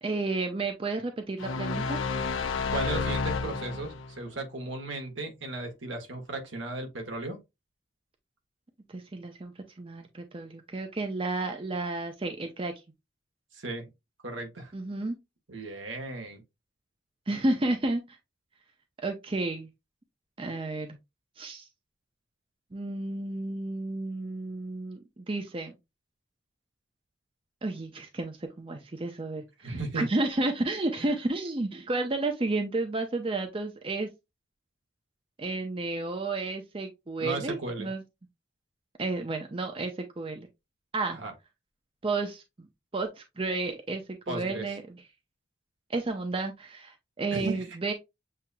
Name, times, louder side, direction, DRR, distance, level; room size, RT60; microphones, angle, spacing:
voice 1, 0.0-2.0 8.9-9.5 9.8-12.7 14.7-15.2 17.3-18.2 19.0-19.7 20.4-21.0 21.4-21.7 22.7-25.8 27.6-34.1 35.4-38.0 39.0-40.5 40.9-41.2 42.0-42.7 42.9-45.0 45.9-47.9, right 2 dB, 25° right, 0.6 m, -32 dB
sound 1, 1.4-4.2, left 4 dB, 85° left, 0.7 m, -30 dB
voice 2, 2.7-7.4 13.5-13.9 14.2-14.7 15.5-16.4 29.6-30.1 31.0-31.1 37.2-37.9 41.1-41.3 44.3-44.6 47.3-47.8, right 2 dB, 75° right, 1.6 m, -36 dB
7.5 x 2.8 x 2.2 m
head